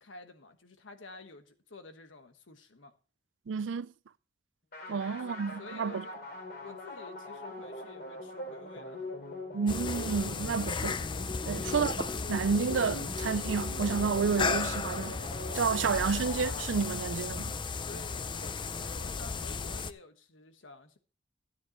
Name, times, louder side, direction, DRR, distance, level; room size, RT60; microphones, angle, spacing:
voice 1, 0.0-2.9 4.9-6.2 6.6-9.1 11.5-11.8 17.8-21.0, left 3 dB, 90° left, 1.3 m, -50 dB
voice 2, 3.5-3.9 4.9-6.0 9.5-11.0 11.4-15.2 15.5-17.5, right 5 dB, 80° right, 0.4 m, -30 dB
sound 1, 4.7-17.3, left 2 dB, 55° left, 3.2 m, -42 dB
sound 2, 9.7-19.9, left 4 dB, 25° left, 0.4 m, -35 dB
13.0 x 9.7 x 3.0 m
head